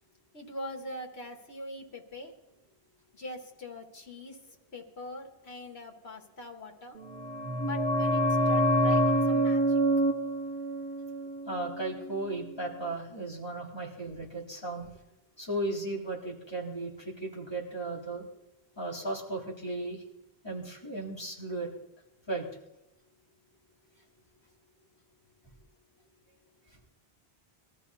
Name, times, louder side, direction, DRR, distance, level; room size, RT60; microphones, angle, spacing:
voice 1, 0.3-2.3 3.1-4.4 4.7-7.0 7.6-9.8, left 1 dB, 80° left, 2 dB, 2.1 m, -42 dB
sound 1, 7.0-12.5 12.7-12.8, right 1 dB, 85° right, 1.8 m, -27 dB
voice 2, 11.5-14.9 15.4-18.3 18.8-20.0 20.4-21.7 22.3-22.5, right 2 dB, 25° left, -4 dB, 4.0 m, -35 dB
22.5 x 14.0 x 4.2 m, 0.86 s
omnidirectional pair, 1.1 m